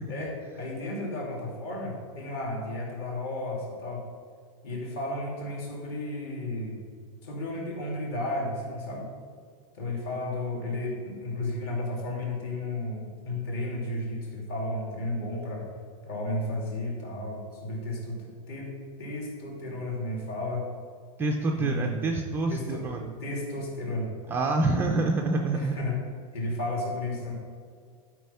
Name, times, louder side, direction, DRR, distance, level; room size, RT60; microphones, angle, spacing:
voice 1, 0.1-4.1 4.6-6.8 7.2-9.1 9.7-15.7 16.1-18.7 19.0-20.7 21.5-22.1 22.5-22.9 23.2-24.1 25.5-26.0 26.3-27.3, left 1 dB, 45° left, -2 dB, 2.6 m, -33 dB
voice 2, 21.2-23.1 24.3-25.8, right 3 dB, 10° right, 1 dB, 0.3 m, -27 dB
11.5 x 4.8 x 5.5 m, 2.1 s
supercardioid pair, 165°, 19 cm